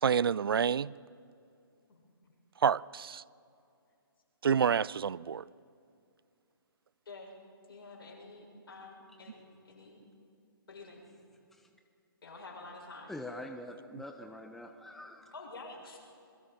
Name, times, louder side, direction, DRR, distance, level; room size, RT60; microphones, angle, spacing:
voice 1, 0.0-0.9 2.6-3.2 4.4-5.4, right 7 dB, 75° right, 0.4 m, -28 dB
voice 2, 7.0-7.4 7.7-10.0 10.7-11.0 12.2-13.1 15.3-16.0, left 3 dB, 70° left, 6.8 m, -48 dB
voice 3, 13.1-15.3, left 1 dB, ahead, 0.8 m, -45 dB
27.0 x 21.5 x 5.2 m
figure-of-eight pair, 135°, 12 cm